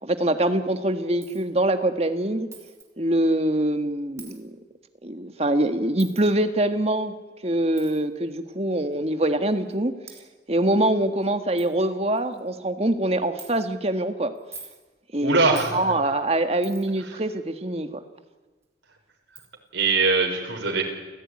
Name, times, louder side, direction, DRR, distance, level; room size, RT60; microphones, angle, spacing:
voice 1, 0.0-2.5 3.0-4.6 5.0-7.1 7.4-9.9 10.5-14.3 15.1-18.0, right 1 dB, 35° right, 8 dB, 1.6 m, -24 dB
Coin (dropping), 1.2-1.5 2.5-2.9 4.2-4.4 6.0-6.3 7.8-8.0 8.9-9.0 9.7-9.8 10.1-10.2 10.8-10.9 11.2-11.3 11.6-11.7 12.1-12.5 13.4-13.5 14.3-14.8 15.5-15.8 16.6-17.0 18.6-18.7 19.3-19.5, right 5 dB, 15° right, 3.5 m, -44 dB
voice 2, 15.2-15.8 19.7-20.8, right 3 dB, 85° right, 2 dB, 5.9 m, -21 dB
29.5 x 16.0 x 9.8 m, 1.3 s
head